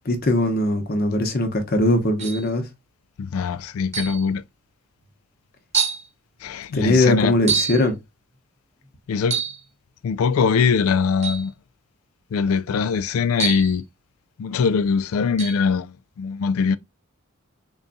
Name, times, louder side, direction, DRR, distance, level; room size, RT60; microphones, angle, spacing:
voice 1, 0.0-2.7 6.7-8.0, left 1 dB, 45° left, 0.9 m, -20 dB
sound 1, 2.2-2.5 3.9-4.3 5.0-5.1 5.7-6.1 7.5-7.8 9.2-9.6 11.2-11.5 13.4-13.8 15.4-15.6, right 7 dB, 30° right, 0.9 m, -26 dB
voice 2, 3.2-4.4 6.4-7.3 9.1-9.4 10.0-11.5 12.3-13.8 14.4-16.8, left 5 dB, 80° left, 0.3 m, -22 dB
3.9 x 2.3 x 3.9 m
head